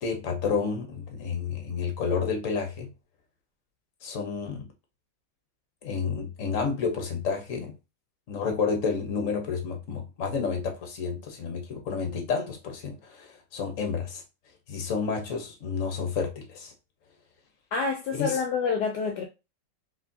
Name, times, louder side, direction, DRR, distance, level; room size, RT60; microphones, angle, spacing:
voice 1, 0.0-2.9 4.0-4.7 5.8-7.7 8.3-14.2 14.7-16.7 18.1-18.4, left 5 dB, 50° left, 1.4 m, -30 dB
voice 2, 17.7-19.2, left 5 dB, 70° left, 1.2 m, -27 dB
4.9 x 3.8 x 2.7 m
omnidirectional pair, 1.9 m